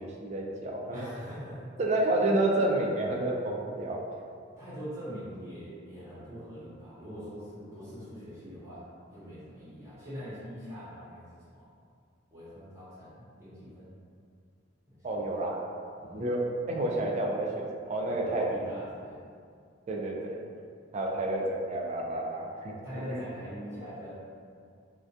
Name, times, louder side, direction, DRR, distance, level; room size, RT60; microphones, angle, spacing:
voice 1, 0.0-1.1 1.8-4.0 15.0-15.6 16.1-18.5 19.9-20.4 20.9-22.7 23.1-23.2, right 1 dB, 35° right, -1 dB, 0.3 m, -29 dB
voice 2, 0.9-1.7 4.6-11.7 12.3-13.9 14.9-15.2 15.9-16.2 18.0-19.2 22.8-24.1, equal, 15° right, -12 dB, 0.9 m, -43 dB
2.4 x 2.2 x 2.5 m, 2.2 s
head